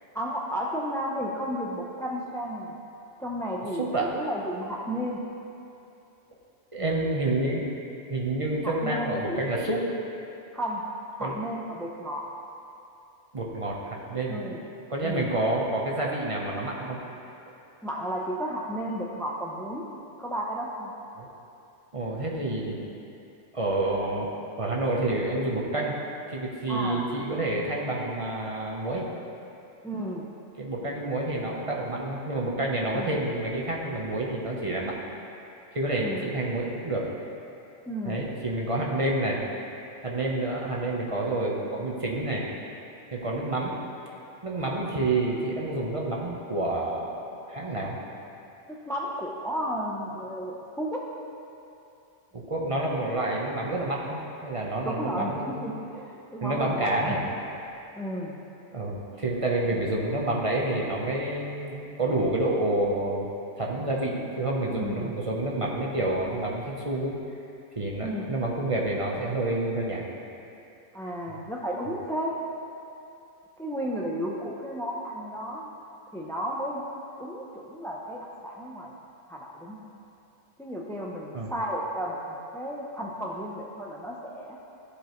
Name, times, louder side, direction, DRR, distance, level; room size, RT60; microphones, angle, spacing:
voice 1, 0.1-2.8 3.2-5.2 8.6-9.7 10.5-10.8 11.2-12.2 14.3-14.6 15.0-15.3 17.8-19.8 20.2-20.9 26.7-27.1 29.8-30.3 32.9-33.2 36.0-36.3 37.9-38.2 48.7-51.0 54.8-57.2 57.9-58.4 64.7-65.1 68.0-68.4 70.9-72.4 73.6-75.7 76.1-76.8 77.2-78.9 79.3-79.8 80.6-84.6, equal, 5° left, -2 dB, 0.4 m, -33 dB
voice 2, 3.8-4.1 6.7-7.7 8.1-9.8 11.2-11.4 13.3-14.4 14.9-17.0 21.2-21.3 21.9-22.9 23.5-24.3 24.6-25.9 26.3-29.1 30.6-35.0 35.7-37.1 38.0-39.4 40.0-42.4 43.1-43.8 44.4-47.2 47.5-48.0 52.3-55.7 56.4-57.2 58.7-63.3 63.6-67.2 67.8-70.0 81.3-81.5, right 2 dB, 30° right, -3 dB, 0.8 m, -28 dB
14.0 x 4.9 x 3.1 m, 2.7 s
omnidirectional pair, 1.2 m